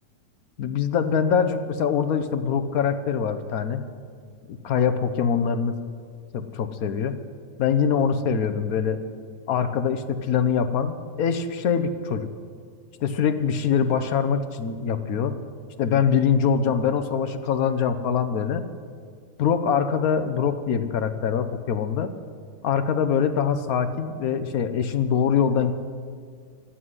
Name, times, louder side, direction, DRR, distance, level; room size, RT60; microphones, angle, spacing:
voice 1, 0.6-3.8 4.5-5.8 6.3-7.2 7.6-9.0 9.5-12.3 13.0-15.3 15.8-18.6 19.4-22.1 22.6-25.7, left 7 dB, 60° left, 10 dB, 1.1 m, -23 dB
12.5 x 8.7 x 9.5 m, 2.1 s
omnidirectional pair, 1.9 m